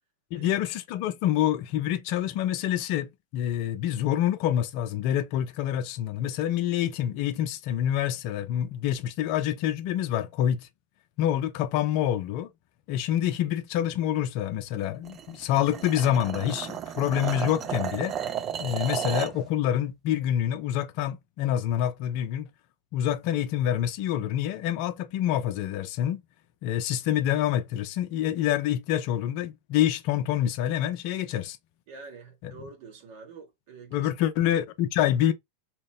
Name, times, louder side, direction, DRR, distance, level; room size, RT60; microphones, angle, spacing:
voice 1, 0.3-10.7 11.2-12.5 12.9-18.1 18.6-22.5 22.9-26.2 26.6-31.6 32.4-32.5 33.9-35.3, left 11 dB, 55° left, 0.4 m, -27 dB
sound 1, 15.0-19.4, right 9 dB, 35° right, 0.4 m, -33 dB
voice 2, 31.9-34.1, right 4 dB, 60° right, 1.2 m, -46 dB
2.9 x 2.0 x 3.4 m
hypercardioid pair, 90°, 0 cm